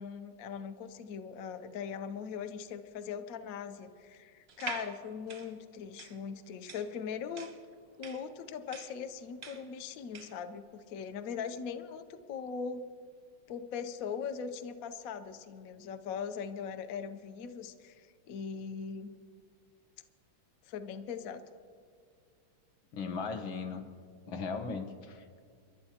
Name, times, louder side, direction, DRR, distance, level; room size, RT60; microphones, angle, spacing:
voice 1, 0.0-7.5 8.0-12.0 12.3-12.8 13.5-19.1 20.7-21.4, left 6 dB, 65° left, 9 dB, 0.9 m, -40 dB
sound 1, 4.5-10.5, right 5 dB, 50° right, 0.7 m, -46 dB
voice 2, 22.9-23.8 24.3-25.4, left 4 dB, 80° left, 7 dB, 1.8 m, -37 dB
29.0 x 11.5 x 2.8 m, 2.2 s
omnidirectional pair, 2.1 m